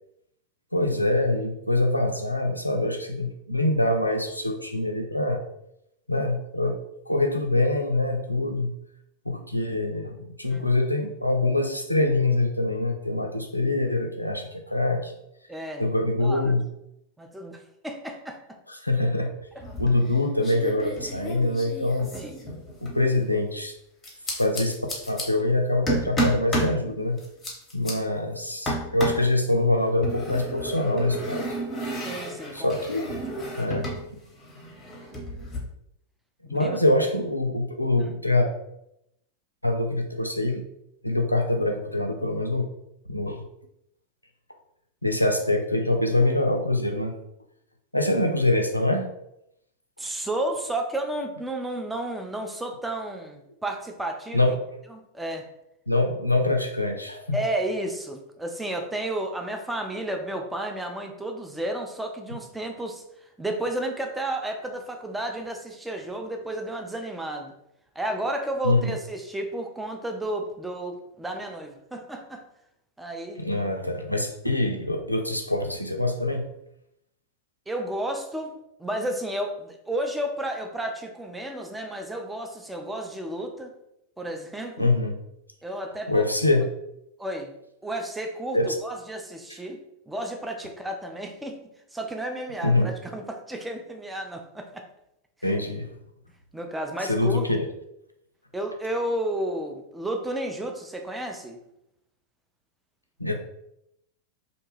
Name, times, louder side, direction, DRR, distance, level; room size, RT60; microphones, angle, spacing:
voice 1, 0.7-5.4 6.1-6.8 7.1-8.7 9.3-15.1 15.8-16.6 18.7-19.3 19.8-22.1 22.8-23.7 24.3-24.8 25.1-27.2 27.7-31.5 32.5-33.2 33.6-33.9 36.5-38.5 39.6-40.6 41.0-42.7 43.1-43.4 45.0-47.2 47.9-49.1 54.3-54.6 55.9-57.4 68.6-68.9 73.4-76.4 84.8-85.2 86.1-86.7 88.5-88.7 92.6-92.9 95.4-95.9 97.0-97.7 103.2-103.3, left 2 dB, 85° left, 4 dB, 0.3 m, -24 dB
voice 2, 15.5-15.8 16.2-16.5 17.2-18.6 22.1-22.4 32.0-32.7 36.5-36.8 38.0-38.1 50.0-54.6 54.9-55.5 57.3-63.0 63.4-67.5 68.0-72.4 73.0-73.4 77.7-78.5 78.8-83.7 84.2-84.9 85.6-86.3 87.2-87.5 87.8-89.8 90.1-91.6 91.9-94.8 95.4-95.6 96.5-97.5 98.5-101.6, right 1 dB, 5° right, 3 dB, 0.4 m, -32 dB
sound 1, 19.6-20.1 20.4-23.0 24.0-25.2 25.9-26.8 27.2-27.9 28.7-29.3 30.0-34.0 34.3-35.6, right 1 dB, 20° left, 0.8 m, -31 dB
2.6 x 2.2 x 3.0 m, 0.81 s
figure-of-eight pair, 90°, 0 cm